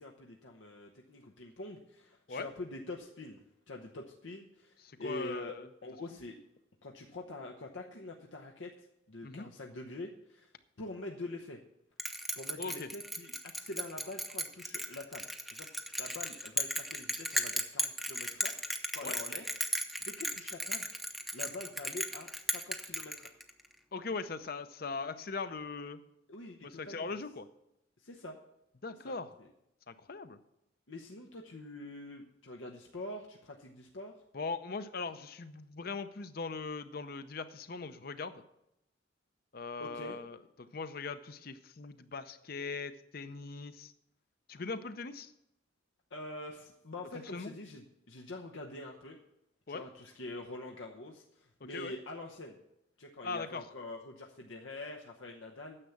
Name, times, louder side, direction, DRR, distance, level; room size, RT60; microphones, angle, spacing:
voice 1, 0.0-3.4 3.7-5.6 5.8-6.4 6.8-11.6 12.4-15.3 15.5-15.7 16.0-18.6 18.9-19.5 20.0-20.9 21.3-23.4 26.3-27.1 28.0-28.4 29.0-29.2 30.9-34.1 39.8-40.2 46.1-49.2 49.7-52.6 53.0-55.8, left 2 dB, 90° left, 1 dB, 1.0 m, -45 dB
voice 2, 4.8-5.7 9.2-9.5 12.6-12.9 19.0-19.2 23.9-26.0 26.6-27.5 28.8-29.3 29.9-30.4 34.3-38.4 39.5-43.9 44.5-45.3 47.3-47.5 49.7-49.8 51.7-51.9 53.2-53.6, left 4 dB, 50° left, 11 dB, 0.7 m, -40 dB
Bell, 12.0-23.6, equal, ahead, 0.7 m, -36 dB
9.8 x 7.3 x 7.0 m, 0.83 s
head